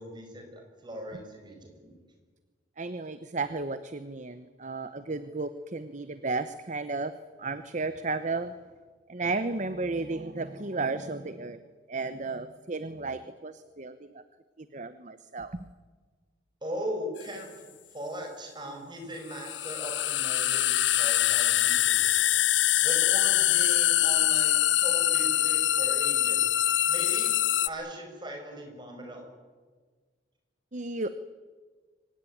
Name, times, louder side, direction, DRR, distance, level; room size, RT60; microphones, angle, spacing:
voice 1, 0.0-2.0 16.6-22.1 22.8-26.5 26.9-27.4 27.6-29.3, equal, 25° right, 3 dB, 6.4 m, -39 dB
voice 2, 2.8-7.1 7.4-8.5 9.1-11.6 11.9-14.2 14.6-15.7 30.7-31.1, right 3 dB, 40° right, 12 dB, 0.9 m, -33 dB
sound 1, 17.2-17.3 19.3-27.7, left 14 dB, 75° left, 0.7 m, -24 dB
24.5 x 19.0 x 9.3 m, 1.5 s
head